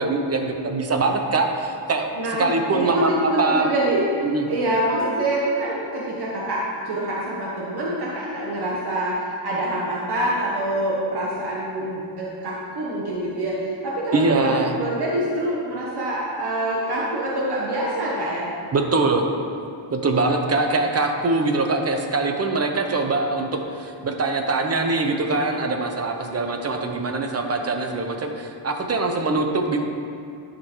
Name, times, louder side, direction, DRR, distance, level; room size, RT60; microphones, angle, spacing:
voice 1, 0.0-2.1 2.4-3.7 4.2-4.5 14.1-14.8 18.7-19.3 19.9-29.8, right 3 dB, 30° right, 4 dB, 0.8 m, -23 dB
voice 2, 2.1-4.0 4.5-18.5, right 1 dB, 50° right, -5 dB, 1.4 m, -25 dB
12.0 x 5.1 x 4.6 m, 2.5 s
wide cardioid pair, 155°, 50 cm